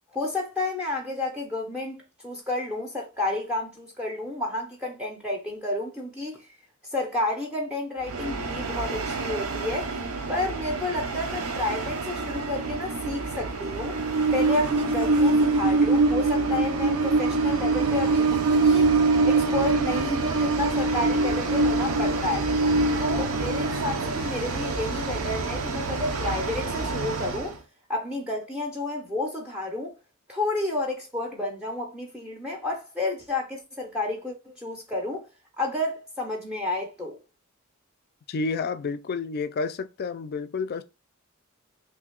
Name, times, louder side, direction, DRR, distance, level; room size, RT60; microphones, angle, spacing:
voice 1, 0.1-6.5 6.9-10.0 10.3-14.0 14.3-18.9 19.2-22.5 23.0-27.5 27.9-29.9 30.3-35.3 35.6-37.2, left 2 dB, 5° right, 0.5 m, -31 dB
Train, 8.0-27.5, right 3 dB, 85° right, 0.6 m, -25 dB
voice 2, 38.3-40.8, left 4 dB, 45° left, 0.3 m, -30 dB
2.8 x 2.6 x 3.7 m
head